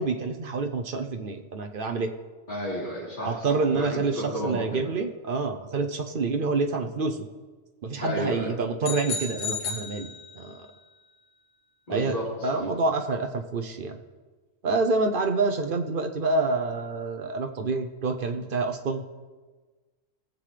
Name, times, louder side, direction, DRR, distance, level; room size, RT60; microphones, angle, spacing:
voice 1, 0.0-2.1 3.2-7.2 7.8-10.1 10.4-10.6 11.9-12.2 12.4-14.0 14.6-19.0, right 3 dB, 50° right, 6 dB, 0.8 m, -27 dB
voice 2, 2.5-4.9 8.0-8.5 11.9-12.6, equal, 40° left, -7 dB, 3.8 m, -32 dB
sound 1, 8.8-10.7, left 5 dB, 85° left, 1.7 m, -34 dB
18.5 x 7.6 x 3.3 m, 1.3 s
omnidirectional pair, 1.4 m